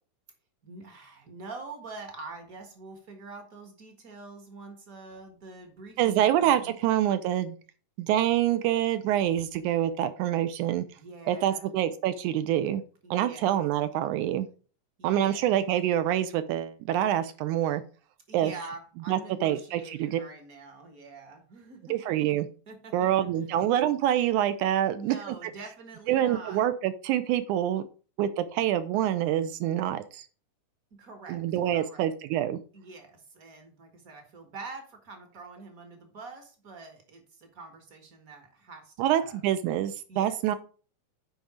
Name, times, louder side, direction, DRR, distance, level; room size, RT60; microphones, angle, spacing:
voice 1, 0.6-6.8 10.9-11.7 13.0-13.5 15.0-15.5 18.3-22.0 22.7-23.1 24.9-26.7 31.0-31.4 31.7-32.0 32.7-39.4 39.7-39.8 40.1-40.4, right 3 dB, 45° right, 5 dB, 1.2 m, -45 dB
voice 2, 6.0-7.6 8.0-10.9 11.3-12.8 13.1-14.5 15.0-17.8 18.3-18.5 19.1-20.2 21.9-22.5 22.9-25.4 26.1-27.8 28.2-30.3 31.3-32.6 39.0-40.6, right 11 dB, 80° right, 12 dB, 1.9 m, -26 dB
7.9 x 5.1 x 4.9 m, 0.38 s
omnidirectional pair, 3.8 m